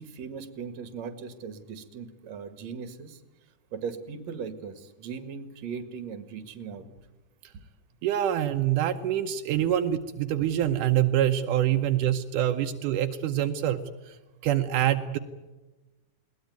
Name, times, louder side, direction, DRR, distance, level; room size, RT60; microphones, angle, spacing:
voice 1, 0.0-3.2 3.7-7.1, right 6 dB, 60° right, 10 dB, 2.8 m, -39 dB
voice 2, 8.0-14.2 14.4-15.2, right 11 dB, 80° right, 6 dB, 2.5 m, -25 dB
21.5 x 19.0 x 9.3 m, 1.1 s
omnidirectional pair, 3.6 m